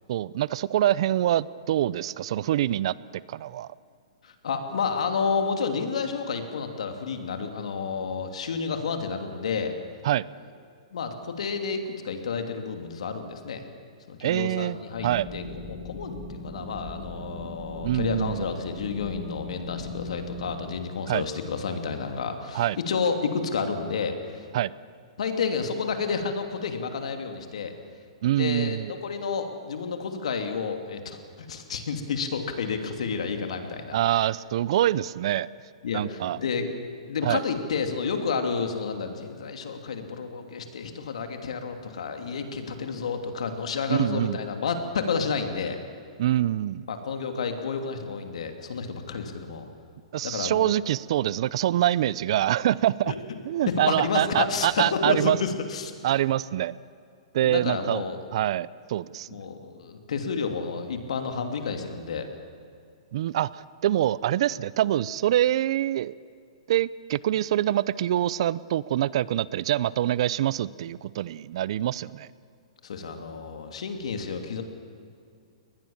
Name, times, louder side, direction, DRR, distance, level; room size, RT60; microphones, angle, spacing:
voice 1, 0.1-2.9 3.3-3.7 10.0-10.2 14.2-14.8 15.0-15.3 17.8-18.4 21.1-21.2 22.5-22.8 24.5-24.7 28.2-28.9 33.9-35.5 35.9-36.4 37.2-37.4 43.9-44.4 46.2-46.9 50.1-53.1 53.4-55.4 56.0-56.8 57.3-58.0 58.3-59.3 63.1-66.1 66.7-72.3, right 12 dB, 60° right, 20 dB, 0.6 m, -25 dB
voice 2, 4.2-9.7 10.9-13.6 14.1-24.5 25.2-27.7 28.3-34.3 35.8-36.7 37.1-45.8 46.9-49.7 50.2-50.6 53.1-53.2 53.9-55.9 57.4-58.2 59.3-62.3 72.8-74.6, left 5 dB, 75° left, 6 dB, 2.9 m, -30 dB
sound 1, 14.9-20.6, left 1 dB, 15° left, 7.8 m, -39 dB
23.0 x 19.5 x 7.3 m, 2.4 s
hypercardioid pair, 140°, 3 cm